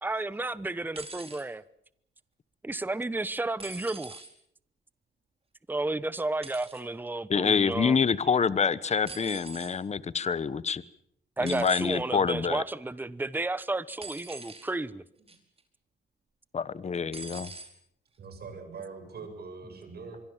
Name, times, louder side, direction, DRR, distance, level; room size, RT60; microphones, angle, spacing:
voice 1, 0.0-1.6 2.6-4.2 5.7-8.0 9.6-9.7 11.4-15.0, right 2 dB, 10° right, 1.0 m, -32 dB
sound 1, 0.9-1.4 3.6-4.3 6.4-6.8 9.1-9.8 11.5-12.0 14.0-14.7 15.3-15.6 17.1-17.7 18.7-18.8, right 3 dB, 30° right, 4.9 m, -43 dB
voice 2, 7.3-10.8 11.4-12.6 16.5-17.5, left 6 dB, 35° left, 1.2 m, -26 dB
voice 3, 18.2-20.2, right 4 dB, 55° right, 7.5 m, -43 dB
25.5 x 23.5 x 7.5 m
cardioid pair, 90°, 20 cm